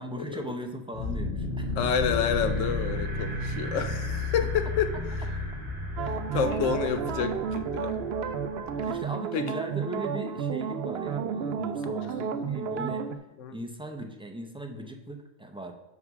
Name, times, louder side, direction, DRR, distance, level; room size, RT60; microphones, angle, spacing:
voice 1, 0.0-1.7 4.9-5.0 6.3-6.6 8.7-13.1 13.5-15.7, right 1 dB, 10° right, 3 dB, 0.3 m, -38 dB
sound 1, 0.9-9.0, left 2 dB, 10° left, 2.2 m, -33 dB
voice 2, 1.7-5.3 6.0-8.0 9.3-9.5 13.4-13.6 14.7-14.9, left 7 dB, 85° left, 9 dB, 1.1 m, -29 dB
sound 2, 6.0-13.2, right 6 dB, 65° right, 0.7 m, -31 dB
5.6 x 4.7 x 6.0 m, 1.0 s
omnidirectional pair, 1.3 m